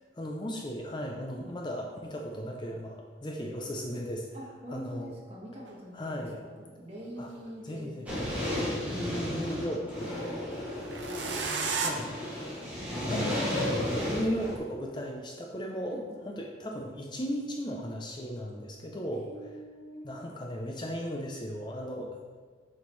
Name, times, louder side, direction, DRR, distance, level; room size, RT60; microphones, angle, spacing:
voice 1, 0.2-4.3 4.7-5.1 5.9-6.4 7.2-7.3 7.6-8.1 8.5-10.1 11.7-12.1 12.9-19.5 20.0-22.2, equal, 25° left, 1 dB, 0.5 m, -36 dB
voice 2, 4.3-8.0 8.8-10.7 11.1-11.3 15.8-16.1 19.1-20.0, equal, 30° right, -4 dB, 1.5 m, -45 dB
sound 1, 5.7-5.8 7.0-8.1 10.8-11.9, right 5 dB, 65° right, 0.7 m, -33 dB
sound 2, 8.1-14.6, left 1 dB, 10° right, 2.0 m, -33 dB
6.8 x 6.5 x 3.1 m, 1.5 s
head